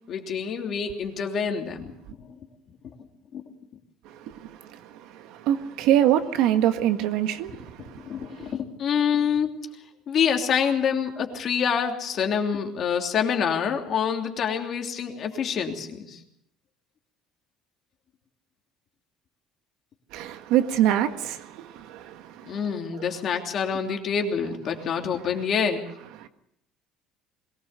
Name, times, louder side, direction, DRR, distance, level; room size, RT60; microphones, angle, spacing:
voice 1, 0.1-1.9 2.2-2.3 2.8-2.9 3.3-3.4 8.0-9.5 10.1-16.2 22.4-25.8, left 7 dB, 45° left, 3 dB, 3.1 m, -26 dB
voice 2, 4.0-8.5 20.1-23.1 26.2-26.3, right 11 dB, 75° right, 8 dB, 1.7 m, -26 dB
22.0 x 18.5 x 6.8 m, 0.75 s
cardioid pair, 145°, 0 cm